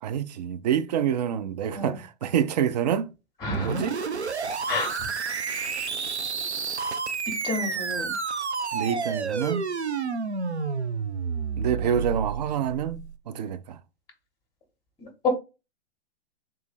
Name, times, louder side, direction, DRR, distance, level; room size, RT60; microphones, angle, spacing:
voice 1, 0.0-3.1 3.6-4.0 8.7-9.6 11.6-13.8, right 9 dB, 40° right, 0.4 m, -27 dB
voice 2, 3.4-3.8 4.7-4.9 7.4-8.1 15.2-15.3, left 3 dB, 15° left, 0.9 m, -28 dB
sound 1, 3.5-13.2, right 5 dB, 90° right, 0.5 m, -30 dB
3.6 x 2.7 x 4.1 m
figure-of-eight pair, 110°, 32 cm